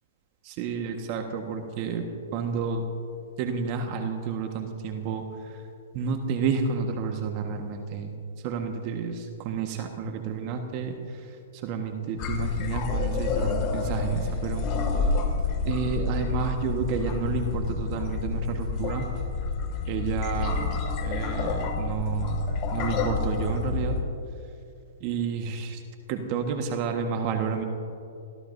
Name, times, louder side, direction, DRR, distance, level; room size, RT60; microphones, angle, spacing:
voice 1, 0.4-2.0 2.3-2.8 3.4-5.6 5.9-8.1 8.4-14.7 15.6-19.1 19.9-24.0 25.0-25.8 26.1-27.6, right 5 dB, 40° right, 4 dB, 1.5 m, -30 dB
sound 1, 12.2-24.0, left 4 dB, 40° left, 2.3 m, -29 dB
29.0 x 16.5 x 2.7 m, 2.6 s
hypercardioid pair, 120°, 0 cm